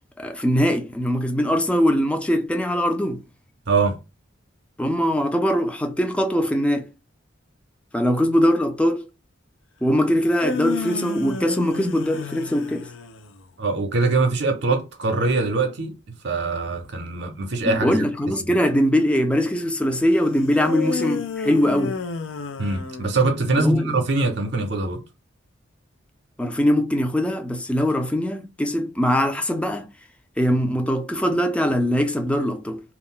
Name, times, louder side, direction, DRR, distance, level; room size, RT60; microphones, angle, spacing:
voice 1, 0.2-3.2 4.8-6.9 7.9-9.1 9.8-12.9 17.6-22.0 23.6-23.9 26.4-29.9 30.4-32.8, equal, 5° left, 0.3 m, -21 dB
voice 2, 3.7-4.0 13.6-15.9 16.2-18.1 22.6-25.0, right 3 dB, 65° right, 0.6 m, -22 dB
sound 1, 10.2-13.4 20.5-23.5, left 4 dB, 85° left, 0.4 m, -31 dB
2.3 x 2.0 x 3.6 m
head